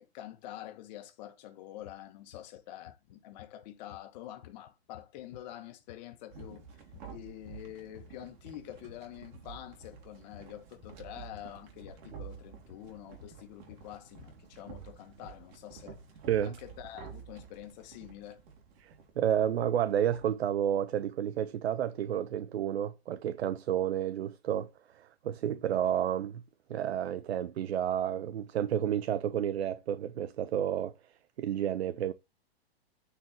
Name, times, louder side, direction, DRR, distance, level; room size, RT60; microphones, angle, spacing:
voice 1, 0.0-6.6 7.1-16.0 16.4-18.4, left 13 dB, 40° left, 1.9 m, -47 dB
sound 1, 1.8-2.0 2.3-2.6 2.9-9.1 9.3-14.3, left 10 dB, 70° left, 1.2 m, -54 dB
sound 2, 6.3-20.3, right 6 dB, 45° right, 3.2 m, -50 dB
voice 2, 18.8-24.7 24.9-26.4 26.7-30.9 31.4-32.1, right 10 dB, 80° right, 0.8 m, -31 dB
9.1 x 4.9 x 4.4 m
hypercardioid pair, 145°, 31 cm